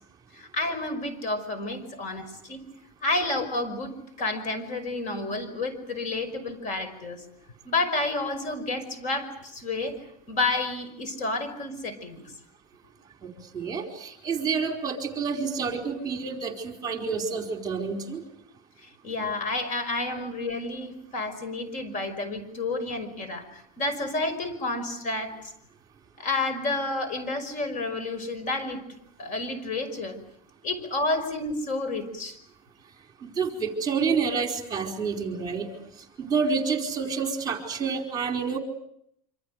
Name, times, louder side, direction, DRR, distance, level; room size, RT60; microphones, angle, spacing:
voice 1, 0.3-2.7 3.0-7.2 7.6-12.2 18.8-25.5 26.2-28.8 29.2-30.2 30.6-32.4, left 2 dB, 40° left, 11 dB, 5.4 m, -30 dB
voice 2, 13.5-18.2 33.2-35.7 36.2-38.6, right 5 dB, 20° right, 3 dB, 4.5 m, -28 dB
27.0 x 26.0 x 6.6 m, 0.74 s
supercardioid pair, 130°, 20 cm